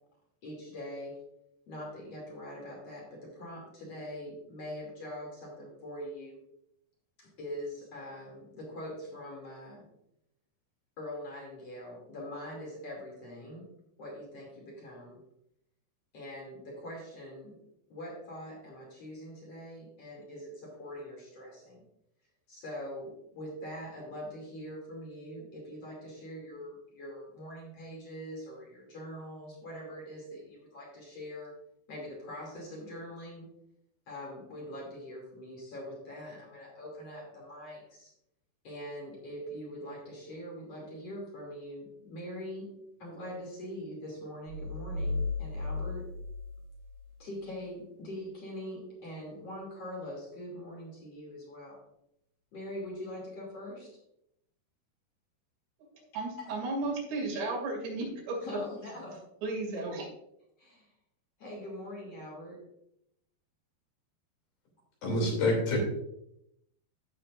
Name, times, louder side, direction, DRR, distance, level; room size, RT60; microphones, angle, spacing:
voice 1, 0.4-1.1 1.7-6.4 7.2-9.8 11.0-13.7 14.0-15.2 16.1-17.6 17.9-21.8 22.5-31.5 31.9-33.5 34.1-38.1 38.6-42.7 43.0-46.0 47.2-51.8 52.5-54.0 56.4-56.5 58.4-59.2 59.7-59.8 60.6-60.9 61.4-62.6, equal, 40° left, -2 dB, 3.1 m, -43 dB
sound 1, 44.5-47.1, left 3 dB, 65° right, 2.4 m, -35 dB
voice 2, 56.1-58.5 59.4-60.1, right 2 dB, 80° right, -1 dB, 4.7 m, -34 dB
voice 3, 65.0-65.8, left 1 dB, 60° left, -1 dB, 4.5 m, -27 dB
15.5 x 6.8 x 2.5 m, 0.78 s
omnidirectional pair, 4.9 m